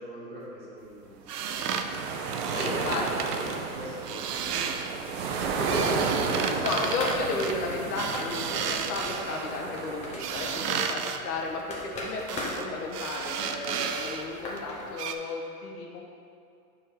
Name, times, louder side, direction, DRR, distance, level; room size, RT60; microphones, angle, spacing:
voice 1, 0.0-1.8 2.5-2.6 3.0-5.6, equal, 20° right, -8 dB, 1.6 m, -45 dB
sound 1, 1.3-3.6 4.0-5.0 5.3-9.6 10.2-11.2 12.3-12.7 12.9-14.3 14.6-14.7 15.0-15.2, right 7 dB, 80° right, 0.7 m, -33 dB
sound 2, 1.4-10.6, right 4 dB, 40° right, 0.7 m, -33 dB
voice 2, 2.5-3.4 5.6-11.6 12.0-16.0, left 3 dB, 70° left, 0 dB, 1.4 m, -33 dB
sound 3, 6.5-14.9, left 1 dB, 15° left, 0.7 m, -40 dB
5.0 x 4.6 x 6.0 m, 2.4 s
hypercardioid pair, 140°, 46 cm